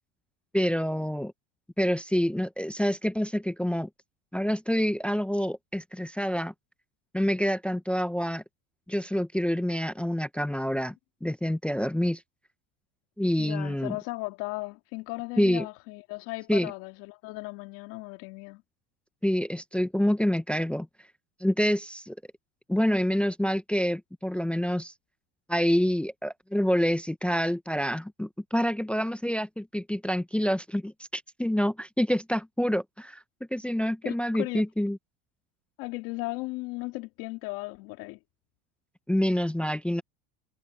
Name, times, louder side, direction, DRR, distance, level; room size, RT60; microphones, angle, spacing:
voice 1, 0.5-1.3 1.8-3.9 4.3-6.5 7.1-8.4 8.9-10.9 11.2-12.2 13.2-14.0 15.4-15.7 16.5-16.7 19.2-20.9 21.4-22.2 22.7-24.9 25.5-33.2 33.5-35.0 39.1-40.0, equal, 5° left, 0.5 m, -27 dB
voice 2, 13.4-18.6 34.0-34.6 35.8-38.2, left 23 dB, 65° left, 2.3 m, -36 dB
supercardioid pair, 120°, 36 cm